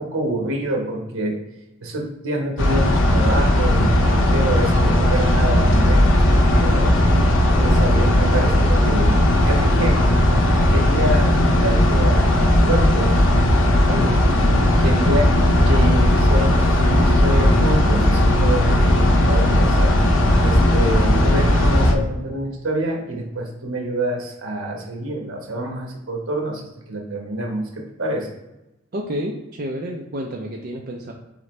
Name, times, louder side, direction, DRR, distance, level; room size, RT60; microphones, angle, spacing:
voice 1, 0.0-1.4 1.8-6.2 6.6-7.2 7.6-10.1 10.7-13.2 14.8-19.9 20.4-26.6 26.9-28.3, right 1 dB, 75° right, 1 dB, 1.2 m, -27 dB
sound 1, 2.6-21.9, left 1 dB, 65° left, 0.6 m, -16 dB
voice 2, 13.8-14.7 28.9-31.1, equal, 45° right, 0 dB, 0.5 m, -30 dB
4.3 x 3.7 x 3.2 m, 0.95 s
head